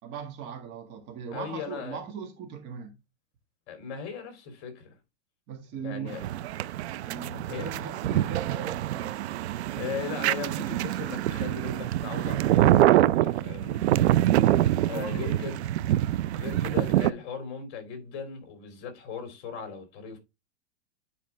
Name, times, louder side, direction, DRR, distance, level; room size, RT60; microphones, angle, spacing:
voice 1, 0.0-3.0 5.5-6.2 7.0-9.1 14.2-15.5 16.4-16.6, right 6 dB, 35° right, 1.7 m, -39 dB
voice 2, 1.3-2.0 3.7-5.0 5.8-6.2 7.5-7.7 9.8-13.9 14.8-15.6 16.3-20.2, left 6 dB, 40° left, 3.0 m, -38 dB
sound 1, 6.1-17.1, right 13 dB, 75° right, 0.6 m, -25 dB
9.5 x 4.8 x 3.3 m
supercardioid pair, 155°, 33 cm